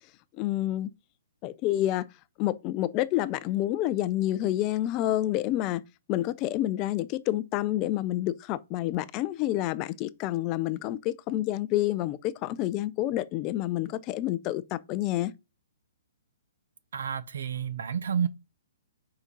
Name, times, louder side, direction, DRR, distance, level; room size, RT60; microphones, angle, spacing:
voice 1, 0.4-0.9 1.4-2.0 2.4-5.8 6.1-15.3, left 14 dB, 25° left, 0.4 m, -28 dB
voice 2, 16.9-18.3, right 7 dB, 70° right, 0.9 m, -30 dB
5.1 x 5.0 x 5.3 m
hypercardioid pair, 170°, 0 cm